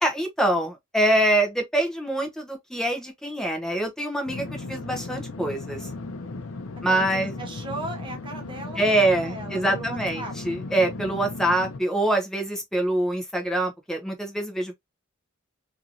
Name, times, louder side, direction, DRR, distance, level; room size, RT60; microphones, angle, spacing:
voice 1, 0.0-5.9 6.8-7.3 8.8-14.7, right 1 dB, 5° left, 0.7 m, -25 dB
sound 1, 4.3-11.8, left 3 dB, 90° left, 0.6 m, -36 dB
voice 2, 6.9-10.3, right 2 dB, 25° right, 0.9 m, -37 dB
2.9 x 2.7 x 2.5 m
head